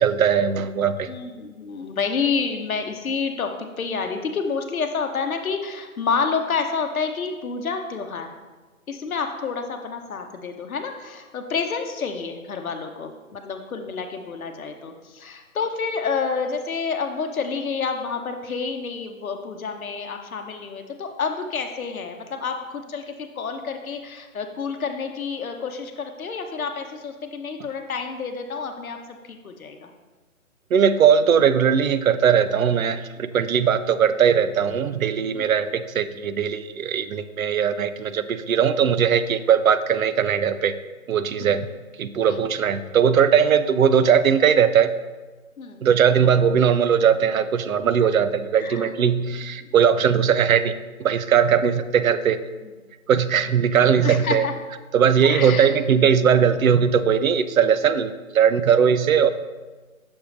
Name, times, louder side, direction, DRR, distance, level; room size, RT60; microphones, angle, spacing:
voice 1, 0.0-1.1 30.7-40.7 41.1-41.7 42.0-44.9 45.8-50.7 51.0-52.4 53.1-54.5 54.9-59.3, right 7 dB, 75° right, 12 dB, 0.5 m, -19 dB
voice 2, 1.1-8.3 8.9-29.9 33.2-33.3 35.4-35.6 41.4-41.5 42.3-42.4 45.6-45.8 48.6-48.9 49.6-49.7 52.6-52.7 54.0-54.5 55.2-56.1, left 5 dB, 80° left, 5 dB, 0.8 m, -29 dB
6.3 x 5.9 x 2.5 m, 1.3 s
hypercardioid pair, 160°, 41 cm